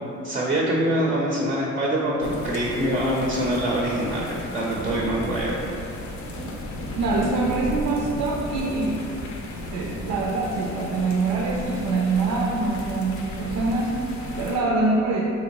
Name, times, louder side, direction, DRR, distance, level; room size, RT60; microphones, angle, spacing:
voice 1, 0.2-5.6, right 1 dB, 25° right, -4 dB, 0.5 m, -24 dB
sound 1, 2.2-14.6, left 1 dB, 65° left, 0.6 m, -35 dB
voice 2, 7.0-9.1 9.7-15.2, right 3 dB, 75° right, -2 dB, 0.5 m, -24 dB
3.6 x 3.0 x 2.9 m, 2.8 s
cardioid pair, 90°, 30 cm